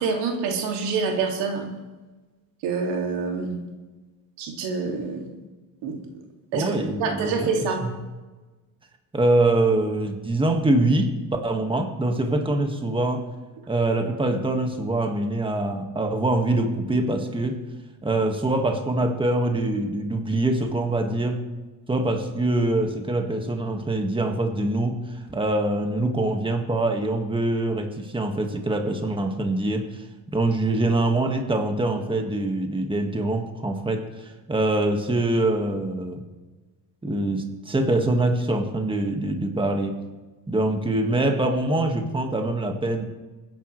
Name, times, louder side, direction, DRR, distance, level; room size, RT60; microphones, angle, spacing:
voice 1, 0.0-1.7 2.6-3.6 4.4-5.3 5.8-6.0 6.5-6.7 7.0-7.8, right 4 dB, 80° right, 2 dB, 2.5 m, -26 dB
voice 2, 6.5-7.5 9.1-11.1 11.4-13.2 13.7-17.6 18.0-21.4 21.9-30.1 30.3-36.2 37.0-40.0 40.5-43.0, right 2 dB, 10° right, 3 dB, 1.7 m, -24 dB
23.5 x 10.5 x 3.2 m, 1.2 s
cardioid pair, 95°, 41 cm